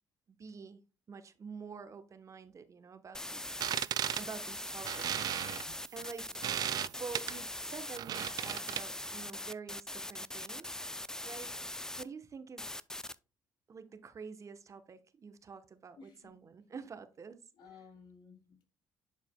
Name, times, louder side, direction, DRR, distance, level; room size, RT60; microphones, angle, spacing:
voice 1, 0.4-0.8 1.1-5.2 5.9-6.3 7.0-10.8 11.2-11.5 11.9-12.7 13.7-17.4 17.7-17.8, right 5 dB, 40° right, 0.9 m, -48 dB
sound 1, 3.1-12.0 12.6-13.1, left 1 dB, 5° left, 0.4 m, -41 dB
sound 2, 3.4-9.1, right 11 dB, 55° right, 0.3 m, -37 dB
voice 2, 15.9-16.5 17.6-18.6, left 5 dB, 65° left, 2.6 m, -56 dB
11.0 x 4.8 x 2.2 m
supercardioid pair, 80°, 8 cm